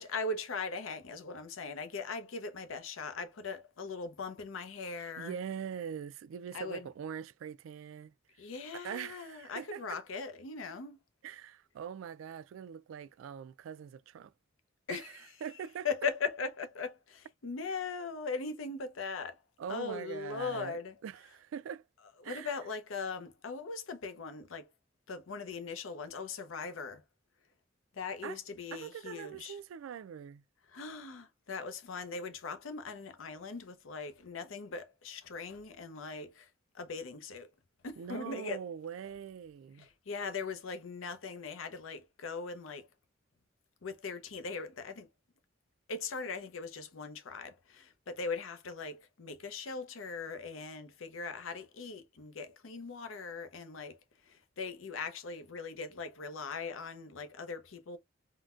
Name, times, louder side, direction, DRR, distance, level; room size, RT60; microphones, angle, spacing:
voice 1, 0.0-5.4 6.5-6.9 8.4-11.0 14.9-15.2 15.8-19.4 19.7-21.0 22.2-24.7 25.1-27.0 27.9-29.6 30.7-36.5 36.7-37.5 37.8-38.6 39.8-42.9 43.8-45.1 45.9-54.0 54.2-58.0, left 4 dB, 85° left, 0.6 m, -40 dB
voice 2, 5.0-8.1 8.7-9.8 11.2-14.3 14.9-15.0 15.4-15.9 19.6-21.9 22.2-22.6 28.2-28.4 28.7-30.4 38.0-39.9, right 8 dB, 80° right, 0.3 m, -42 dB
3.8 x 2.1 x 2.3 m
head